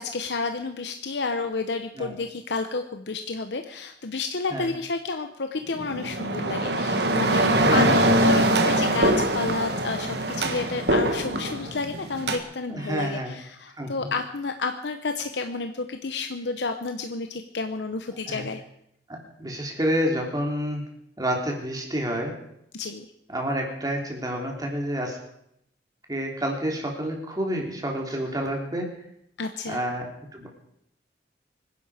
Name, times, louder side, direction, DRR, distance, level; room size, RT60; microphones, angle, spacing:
voice 1, 0.0-18.6 22.7-23.1 29.4-29.8, left 3 dB, 80° left, 7 dB, 0.9 m, -30 dB
sound 1, 5.7-12.4, right 1 dB, 65° right, 1.8 m, -23 dB
voice 2, 7.5-8.1 12.7-13.3 13.8-14.1 18.3-18.4 19.1-20.8 21.2-22.3 23.3-25.2 26.1-28.9 29.7-30.1 30.3-30.5, equal, 20° right, 1 dB, 3.2 m, -29 dB
24.5 x 11.0 x 4.9 m, 0.76 s
head